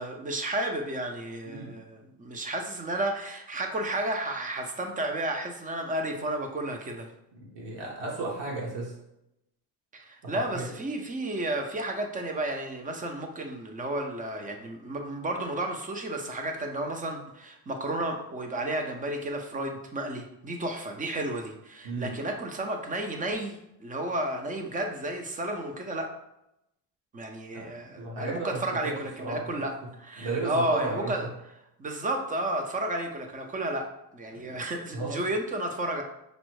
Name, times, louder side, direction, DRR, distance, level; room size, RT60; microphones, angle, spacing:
voice 1, 0.0-7.1 9.9-26.1 27.1-29.7 30.0-31.3 31.8-33.9 34.1-36.0, right 1 dB, 20° right, 4 dB, 0.3 m, -32 dB
voice 2, 7.3-8.9 10.2-10.7 21.8-22.1 27.5-27.7 28.0-28.9 29.2-29.6 30.2-31.1 34.3-34.6 34.9-35.2, right 3 dB, 75° right, -3 dB, 1.4 m, -34 dB
5.1 x 2.0 x 4.6 m, 0.84 s
cardioid pair, 170°, 44 cm